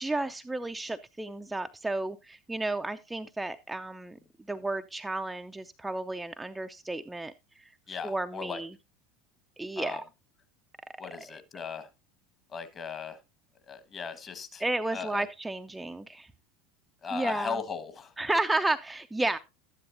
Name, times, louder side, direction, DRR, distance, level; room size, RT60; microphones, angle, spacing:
voice 1, 0.0-4.2 4.5-7.3 7.6-8.7 9.6-10.0 11.2-11.3 14.6-16.3 17.1-17.6 18.2-19.4, right 2 dB, 10° right, 7 dB, 0.5 m, -32 dB
voice 2, 7.9-8.6 9.8-10.0 11.0-11.9 12.5-13.2 13.7-14.6 14.9-15.3 17.0-18.1, left 6 dB, 30° left, 10 dB, 1.5 m, -37 dB
12.0 x 10.5 x 2.6 m, 0.26 s
figure-of-eight pair, 75°, 0 cm